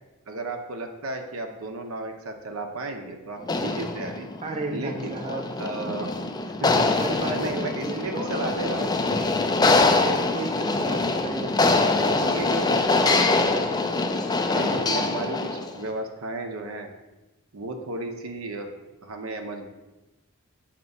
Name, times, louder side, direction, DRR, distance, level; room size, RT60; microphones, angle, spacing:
voice 1, 0.3-4.3 4.7-5.2 5.6-6.1 6.6-7.0 7.3-8.9 12.2-13.8 14.4-16.9 17.5-18.7 19.0-19.7, right 2 dB, 70° right, 4 dB, 0.7 m, -34 dB
sound 1, 3.4-15.8, left 3 dB, 20° left, 0.4 m, -24 dB
voice 2, 4.4-5.5 5.9-6.1 6.4-6.5 7.0-13.7 14.5-14.9, right 2 dB, 30° right, 1 dB, 0.6 m, -34 dB
7.0 x 2.9 x 5.3 m, 1.1 s
head